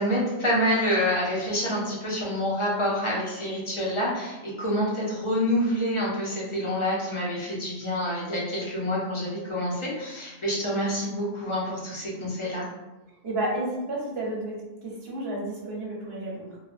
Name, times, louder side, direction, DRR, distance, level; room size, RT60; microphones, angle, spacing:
voice 1, 0.0-12.7, equal, 35° left, -6 dB, 0.5 m, -27 dB
voice 2, 13.2-16.5, right 1 dB, 55° right, -4 dB, 1.0 m, -31 dB
3.1 x 2.1 x 2.5 m, 1.0 s
omnidirectional pair, 1.3 m